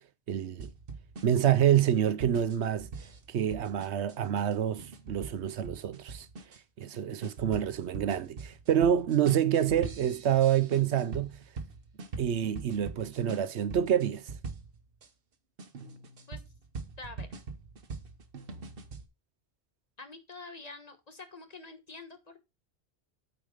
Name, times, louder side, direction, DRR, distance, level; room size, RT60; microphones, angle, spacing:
voice 1, 0.3-0.7 1.2-2.9 3.3-6.3 6.8-11.3 12.2-14.2, right 10 dB, 75° right, 1.0 m, -27 dB
sound 1, 0.6-15.1 15.6-19.1, right 4 dB, 55° right, 1.2 m, -43 dB
voice 2, 20.0-22.4, left 3 dB, 35° left, 1.3 m, -46 dB
8.8 x 4.9 x 4.9 m
omnidirectional pair, 1.1 m